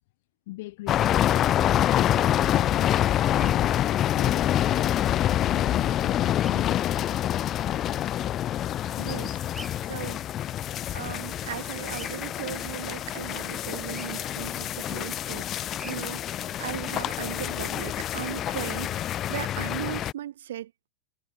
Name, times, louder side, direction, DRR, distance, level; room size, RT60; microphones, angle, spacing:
voice 1, 0.5-7.2, left 19 dB, 50° left, 3.1 m, -39 dB
sound 1, 0.9-20.1, left 12 dB, 30° left, 0.8 m, -26 dB
Bird vocalization bird call bird song, 0.9-1.2 3.3-3.6 6.3-6.5 9.5-9.8 11.9-12.1 13.9-14.1 15.7-16.0 19.2-19.5, right 1 dB, 5° right, 1.9 m, -44 dB
voice 2, 9.0-9.4 9.8-10.2 10.9-20.7, right 12 dB, 60° right, 2.6 m, -37 dB
figure-of-eight pair, 90°, 0 cm